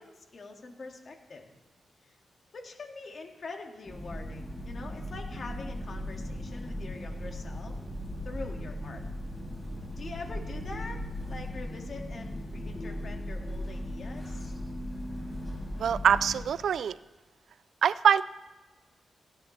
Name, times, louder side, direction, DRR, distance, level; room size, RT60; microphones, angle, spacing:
voice 1, 0.0-1.5 2.1-2.2 2.5-7.8 8.2-9.0 10.0-14.5, left 3 dB, 60° left, 2 dB, 2.0 m, -44 dB
sound 1, 3.9-16.4, left 1 dB, 15° left, 3.1 m, -38 dB
voice 2, 15.8-17.0 17.8-18.2, right 8 dB, 80° right, 18 dB, 0.3 m, -24 dB
16.5 x 10.0 x 3.3 m, 1.2 s
cardioid pair, 65°, 0 cm